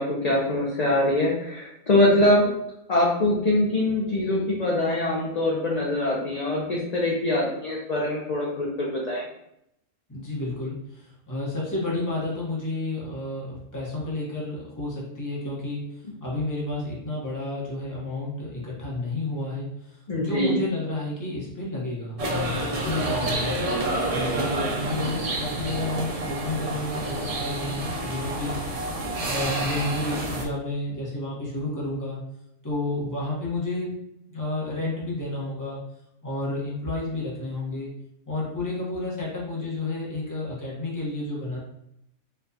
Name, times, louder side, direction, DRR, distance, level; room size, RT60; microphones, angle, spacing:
voice 1, 0.0-2.5 2.9-9.2 20.1-20.6, left 1 dB, 45° left, -5 dB, 0.6 m, -23 dB
voice 2, 10.1-15.9 16.2-23.5 24.1-28.9 29.2-32.2 32.6-33.9 34.3-35.8 36.2-37.9 38.3-41.6, left 2 dB, 15° left, -5 dB, 0.9 m, -31 dB
sound 1, 22.2-30.4, right 2 dB, 55° right, 0.4 m, -29 dB
4.2 x 2.3 x 2.7 m, 0.79 s
omnidirectional pair, 1.3 m